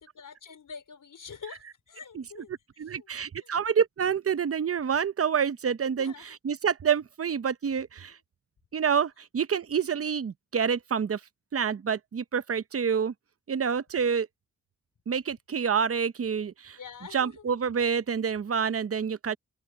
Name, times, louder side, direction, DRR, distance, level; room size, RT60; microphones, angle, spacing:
voice 1, 0.0-2.5 2.9-3.1 3.4-3.5 5.9-6.4 16.8-17.4, left 6 dB, 75° left, 4.1 m, -45 dB
voice 2, 2.8-8.2 8.7-11.2 11.5-13.1 13.5-14.3 15.1-16.8 17.1-19.4, right 7 dB, 45° right, 0.7 m, -27 dB
open air
cardioid pair, 80°, 32 cm